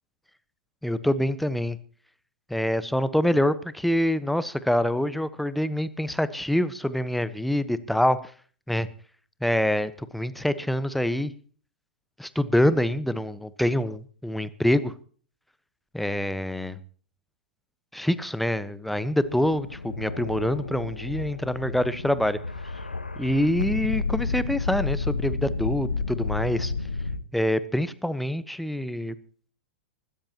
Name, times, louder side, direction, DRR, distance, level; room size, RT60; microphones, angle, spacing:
voice 1, 0.8-1.8 2.5-8.2 8.7-8.9 9.4-11.3 12.2-14.9 15.9-16.8 17.9-22.4 23.2-26.7 27.3-29.1, left 1 dB, ahead, 14 dB, 1.1 m, -25 dB
sound 1, 19.0-27.2, left 3 dB, 90° left, 1.3 m, -31 dB
24.5 x 13.5 x 3.0 m, 0.43 s
figure-of-eight pair, 100°, 5 cm